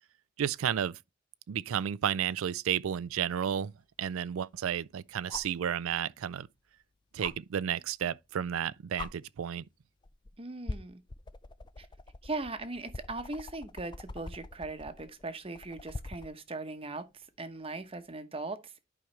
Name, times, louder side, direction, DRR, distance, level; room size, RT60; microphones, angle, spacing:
voice 1, 0.4-1.0 1.5-3.7 4.0-6.5 7.1-9.6, right 9 dB, 90° right, 0.4 m, -32 dB
sound 1, 3.1-3.2 5.3-5.6 7.2-7.3 8.5-8.6 9.0-9.1 10.0-10.3 10.7-16.3 18.0-18.1, left 3 dB, 20° left, 0.4 m, -43 dB
voice 2, 10.4-11.0 11.8-11.9 12.2-18.8, right 3 dB, 30° right, 0.9 m, -39 dB
10.5 x 5.0 x 3.2 m
head